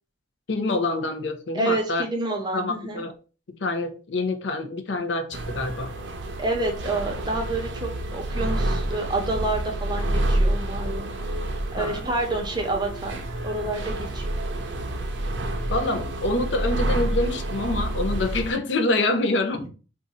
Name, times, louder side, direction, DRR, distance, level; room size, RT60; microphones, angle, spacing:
voice 1, 0.5-2.0 2.5-3.1 3.5-5.9 11.8-12.0 15.7-19.6, left 2 dB, 85° left, 0.6 m, -26 dB
voice 2, 1.5-3.0 6.4-11.1 11.7-13.2 13.4-14.2 19.6-19.7, right 2 dB, 25° right, 0.8 m, -28 dB
sound 1, 5.3-18.5, right 1 dB, 90° right, 0.5 m, -28 dB
2.6 x 2.4 x 4.0 m
head